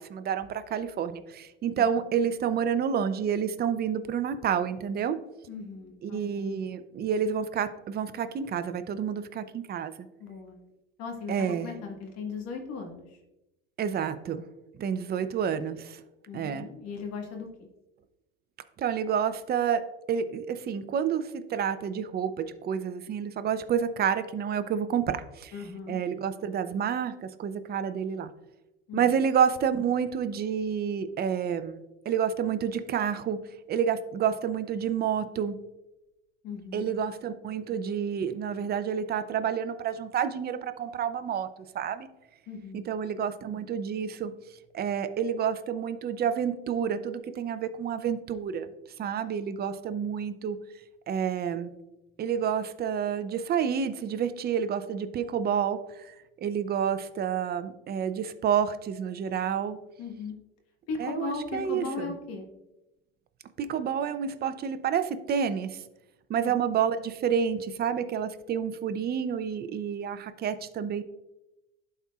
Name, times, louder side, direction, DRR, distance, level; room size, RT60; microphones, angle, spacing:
voice 1, 0.0-5.2 6.0-9.9 11.3-11.7 13.8-14.4 14.8-16.0 16.3-16.7 18.8-19.8 20.1-25.5 25.9-28.3 28.9-33.4 33.7-35.6 36.7-41.5 41.7-42.1 42.7-44.3 44.7-48.7 49.0-50.6 51.1-51.7 52.2-56.1 56.4-59.8 61.0-62.1 63.6-65.8 66.3-71.0, right 7 dB, 35° right, 11 dB, 0.6 m, -29 dB
voice 2, 5.5-6.5 10.2-10.6 11.0-13.2 16.3-17.7 25.5-26.0 28.9-29.2 36.4-36.9 42.5-42.9 60.0-60.4 60.9-62.4 66.4-66.5, left 5 dB, 55° left, 2 dB, 1.5 m, -38 dB
11.5 x 4.3 x 2.4 m, 0.96 s
hypercardioid pair, 90°, 30 cm